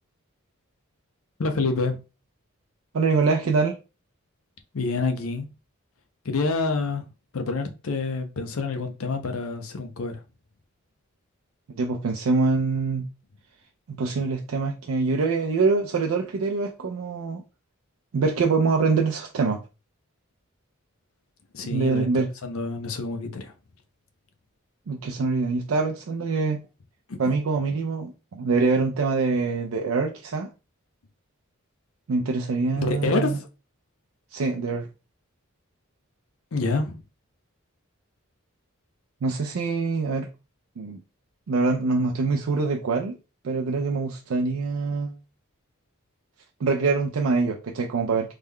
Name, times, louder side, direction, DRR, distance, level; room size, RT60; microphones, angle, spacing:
voice 1, 1.4-2.0 4.7-5.5 6.2-7.0 7.3-10.2 21.5-22.1 22.4-23.5 27.1-27.3 32.8-33.5 36.5-37.0, left 3 dB, 80° left, 0.6 m, -27 dB
voice 2, 2.9-3.8 11.8-13.1 13.9-17.4 18.1-19.6 21.7-22.3 24.9-26.6 27.2-30.5 32.1-33.4 34.3-34.9 39.2-40.3 40.8-41.0 41.5-43.2 43.4-45.2 46.6-48.3, right 4 dB, 80° right, 0.4 m, -24 dB
3.3 x 2.2 x 3.5 m
head